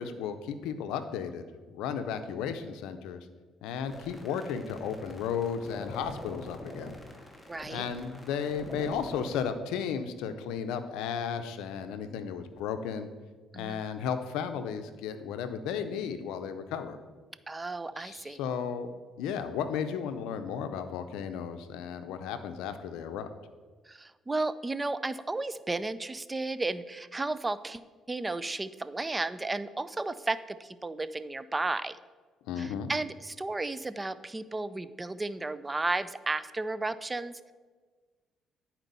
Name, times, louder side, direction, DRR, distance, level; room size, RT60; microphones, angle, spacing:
voice 1, 0.0-1.4 1.7-3.3 3.6-7.0 7.7-13.1 13.6-17.0 18.0-18.9 19.2-23.3 32.5-32.9, left 7 dB, 90° left, 9 dB, 0.5 m, -34 dB
sound 1, 3.8-9.4, left 1 dB, 5° left, 1.2 m, -44 dB
voice 2, 7.5-7.9 13.5-13.8 17.5-18.4 23.9-27.8 28.1-32.0 32.6-37.5, right 2 dB, 20° right, 15 dB, 0.3 m, -33 dB
10.5 x 4.3 x 4.0 m, 1.4 s
cardioid pair, 85°, 0 cm